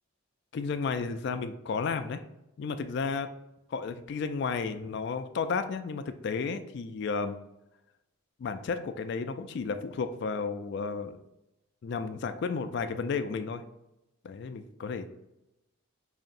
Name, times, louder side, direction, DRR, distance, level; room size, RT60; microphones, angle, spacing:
voice 1, 0.5-2.2 2.6-3.3 3.7-7.4 8.4-11.2 11.8-13.6 14.2-15.1, left 5 dB, 55° left, 10 dB, 0.3 m, -32 dB
5.2 x 2.7 x 2.5 m, 0.90 s
head